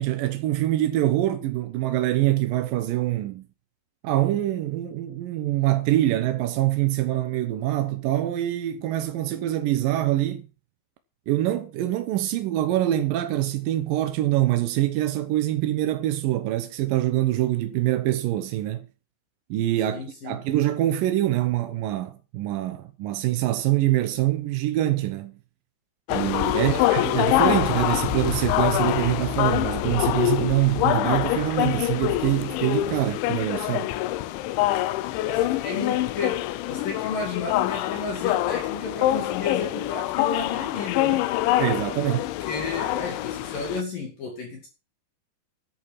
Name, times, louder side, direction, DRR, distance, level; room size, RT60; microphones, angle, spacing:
voice 1, 0.0-3.4 4.0-10.5 11.3-18.9 19.5-25.3 26.1-33.9 41.6-42.2, right 14 dB, 75° right, 2.1 m, -24 dB
voice 2, 19.9-20.4 26.5-26.9 35.2-41.3 42.0-44.7, left 4 dB, 55° left, 3.9 m, -32 dB
sound 1, 26.1-43.8, left 15 dB, 85° left, 3.1 m, -25 dB
10.5 x 8.6 x 7.3 m
omnidirectional pair, 5.2 m